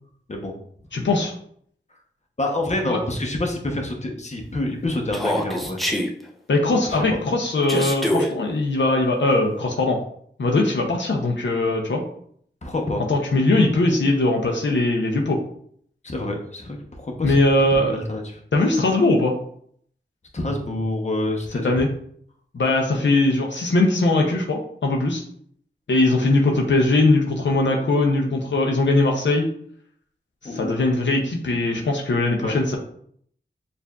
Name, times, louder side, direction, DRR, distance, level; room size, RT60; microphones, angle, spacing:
voice 1, 0.9-1.3 2.9-3.0 6.5-10.0 10.4-12.0 13.1-15.4 17.2-18.0 18.5-19.3 21.6-21.9 22.5-25.2 25.9-29.5 30.4-32.8, left 2 dB, 70° left, 0 dB, 0.6 m, -20 dB
voice 2, 2.4-5.8 6.9-7.2 12.6-13.0 16.0-18.4 20.3-21.7 30.4-30.7 32.4-32.6, left 1 dB, 35° left, 2 dB, 0.8 m, -27 dB
Human voice, 5.1-6.1 7.7-8.3, left 1 dB, ahead, 0.6 m, -23 dB
6.6 x 2.5 x 2.3 m, 0.63 s
wide cardioid pair, 75°, 19 cm